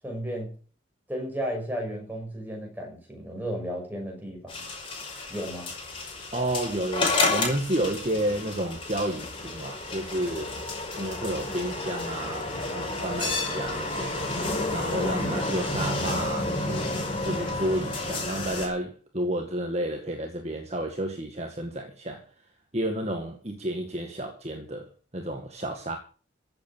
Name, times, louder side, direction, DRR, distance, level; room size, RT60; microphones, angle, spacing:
voice 1, 0.0-0.5 1.1-4.7 5.3-5.7, equal, 10° right, 6.2 m, -34 dB
sound 1, 4.5-18.7, left 2 dB, 25° left, 5.5 m, -31 dB
voice 2, 6.3-10.6 10.9-16.9 17.2-22.5 22.7-26.0, right 1 dB, 35° right, 1.9 m, -31 dB
15.0 x 8.4 x 7.2 m
head